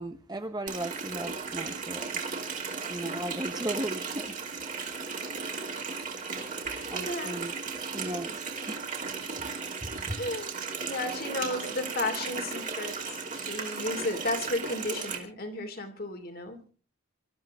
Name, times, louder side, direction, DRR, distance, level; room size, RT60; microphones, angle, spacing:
voice 1, 0.0-2.2 2.9-4.3 6.9-7.5 7.8-8.8 9.8-10.2, right 1 dB, 20° right, 6 dB, 1.0 m, -36 dB
Water tap faucet, 0.7-15.2, right 5 dB, 35° right, 2.7 m, -36 dB
voice 2, 6.6-7.4 10.2-10.5 10.8-16.7, left 2 dB, 45° left, 6 dB, 2.8 m, -34 dB
24.5 x 13.5 x 3.7 m, 0.39 s
head